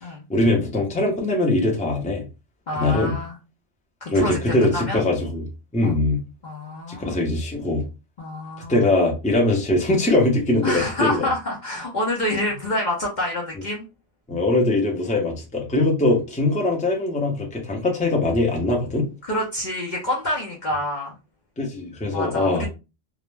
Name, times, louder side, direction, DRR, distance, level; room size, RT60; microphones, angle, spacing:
voice 1, 0.3-2.2 2.7-3.1 4.1-5.5 5.7-6.2 7.0-7.8 8.7-11.3 14.3-19.1 21.6-22.7, left 2 dB, 10° left, 0.5 m, -21 dB
voice 2, 2.7-3.4 4.0-5.0 5.8-6.0 6.4-7.2 8.2-8.9 10.6-13.8 19.2-21.2 22.1-22.7, left 1 dB, 50° left, 0.6 m, -27 dB
2.4 x 2.1 x 3.1 m
omnidirectional pair, 1.2 m